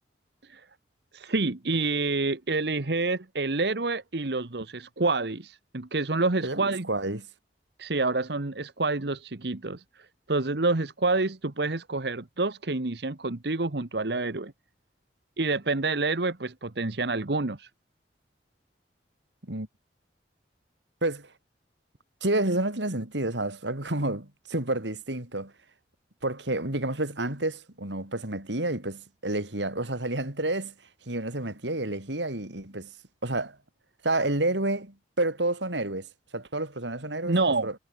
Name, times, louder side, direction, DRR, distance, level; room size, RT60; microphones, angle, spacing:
voice 1, 1.1-6.9 7.8-9.8 10.3-14.5 15.4-17.7 37.2-37.7, right 3 dB, 70° right, 1.2 m, -28 dB
voice 2, 6.4-7.2 19.5-19.7 21.0-21.3 22.2-25.5 26.2-30.7 31.1-32.9 33.2-33.6 34.0-36.1 36.3-37.3 37.6-37.8, right 2 dB, 90° right, 4.6 m, -29 dB
head